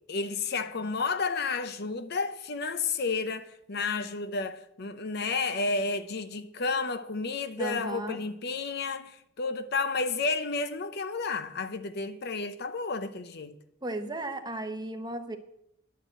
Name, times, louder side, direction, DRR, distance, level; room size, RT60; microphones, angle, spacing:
voice 1, 0.1-13.6, left 4 dB, 55° left, 0.7 m, -31 dB
voice 2, 7.6-8.2 13.8-15.4, right 2 dB, 20° right, 0.9 m, -35 dB
11.0 x 6.7 x 7.6 m
head